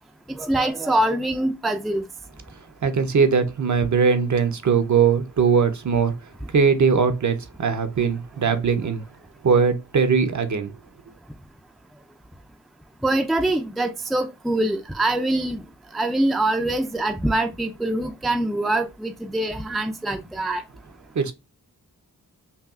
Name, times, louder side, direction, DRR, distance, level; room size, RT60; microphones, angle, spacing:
voice 1, 0.3-2.1 13.0-15.6 15.9-20.6, right 1 dB, ahead, 0.4 m, -24 dB
voice 2, 2.8-6.1 6.5-9.0 9.4-10.7 21.1-21.3, right 6 dB, 60° right, 0.7 m, -20 dB
5.5 x 2.3 x 2.3 m
wide cardioid pair, 100°, 34 cm